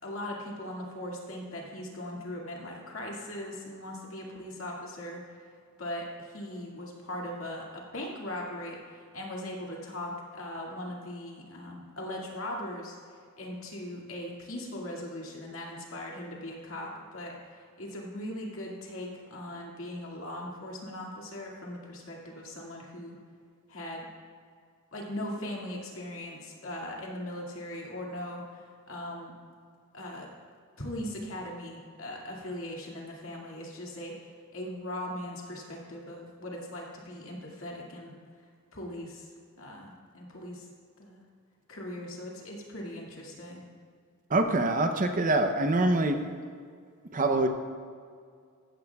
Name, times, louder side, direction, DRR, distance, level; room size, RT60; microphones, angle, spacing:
voice 1, 0.0-5.2 5.8-6.1 6.3-13.0 13.4-23.2 23.7-24.1 24.9-29.3 29.9-30.3 30.8-38.1 38.7-39.3 39.6-40.7 41.0-41.2 41.7-43.6, left 1 dB, 65° left, -2 dB, 2.3 m, -39 dB
voice 2, 44.3-46.2 47.1-47.5, right 2 dB, 40° right, 6 dB, 0.7 m, -24 dB
15.5 x 13.5 x 2.4 m, 2.1 s
head